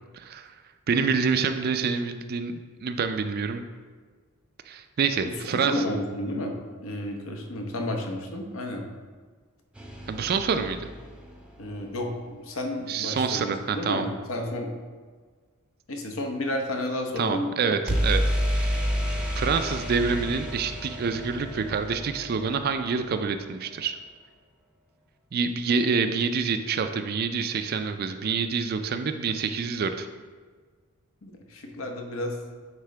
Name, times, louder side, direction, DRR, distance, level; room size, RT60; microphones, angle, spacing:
voice 1, 0.1-0.5 0.9-3.6 4.7-5.8 10.1-10.9 12.9-14.1 17.2-18.2 18.6-18.8 19.4-24.0 25.3-30.1, right 5 dB, 45° right, 8 dB, 0.3 m, -27 dB
voice 2, 5.6-8.9 11.6-14.7 15.9-17.5 31.2-32.4, left 1 dB, 65° left, 2 dB, 0.9 m, -31 dB
sound 1, 9.7-11.8 17.9-23.6, equal, 5° right, 0.6 m, -30 dB
9.3 x 3.7 x 3.3 m, 1.5 s
head